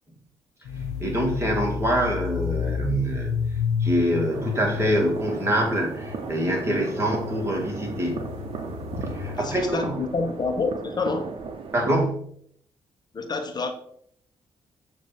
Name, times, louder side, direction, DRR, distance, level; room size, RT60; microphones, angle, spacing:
sound 1, 0.7-9.6, left 7 dB, 85° left, 0.5 m, -31 dB
voice 1, 1.0-3.4 3.8-8.2 9.1-9.9 11.7-12.2, right 1 dB, 25° right, -1 dB, 2.4 m, -25 dB
sound 2, 4.3-12.1, right 5 dB, 60° right, 0.8 m, -36 dB
voice 2, 9.3-11.3 13.1-13.7, left 3 dB, 40° left, 5 dB, 1.1 m, -28 dB
6.4 x 2.9 x 5.5 m, 0.65 s
supercardioid pair, 50°, 11 cm